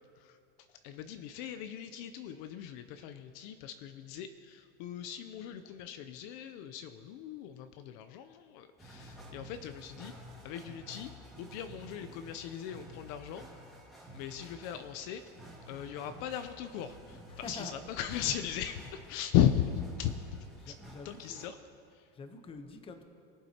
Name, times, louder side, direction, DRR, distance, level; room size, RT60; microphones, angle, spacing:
voice 1, 0.7-10.1 10.4-11.1 11.4-13.4 14.1-15.2 15.7-20.1 20.7-20.8 21.0-21.6 21.9-22.1, left 10 dB, 55° left, 10 dB, 0.6 m, -36 dB
sound 1, 8.8-21.5, equal, ahead, 1.9 m, -52 dB
voice 2, 17.3-17.7 18.2-18.3 20.5-21.5 22.1-23.0, left 4 dB, 20° left, 7 dB, 0.8 m, -46 dB
22.0 x 7.8 x 2.9 m, 2.4 s
supercardioid pair, 145°, 29 cm